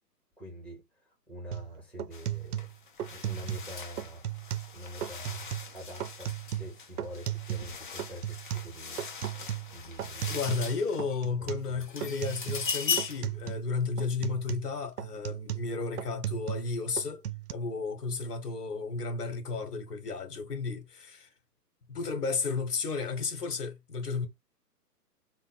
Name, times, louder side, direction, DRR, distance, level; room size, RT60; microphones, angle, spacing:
voice 1, 0.4-0.8 1.3-2.7 3.1-4.2 4.7-9.0 9.3-10.5 11.4-11.8, equal, 5° left, 0.8 m, -45 dB
sound 1, 1.5-1.7 2.0-3.7 4.0-4.7 5.0-5.7 6.0-7.7 8.0-10.7 11.0-11.7 12.0-12.7 13.0-13.7 14.0-16.7 17.0-17.5, right 11 dB, 65° right, 0.6 m, -36 dB
sound 2, 2.1-2.3 2.6-11.2 11.6-13.3, left 5 dB, 35° left, 0.5 m, -39 dB
voice 2, 10.3-17.2 17.5-21.3 21.9-24.3, left 4 dB, 70° left, 1.4 m, -33 dB
3.6 x 2.1 x 4.0 m
figure-of-eight pair, 135°, 49 cm